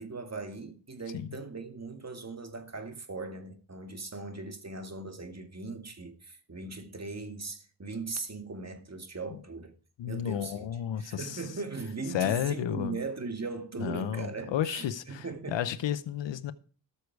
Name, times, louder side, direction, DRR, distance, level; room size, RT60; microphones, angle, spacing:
voice 1, 0.0-9.7 10.1-10.7 11.0-15.6, right 3 dB, 35° right, 2.2 m, -39 dB
voice 2, 10.0-11.4 12.1-13.0 13.8-16.5, left 10 dB, 85° left, 0.9 m, -32 dB
13.0 x 6.9 x 4.7 m
cardioid pair, 55°, 43 cm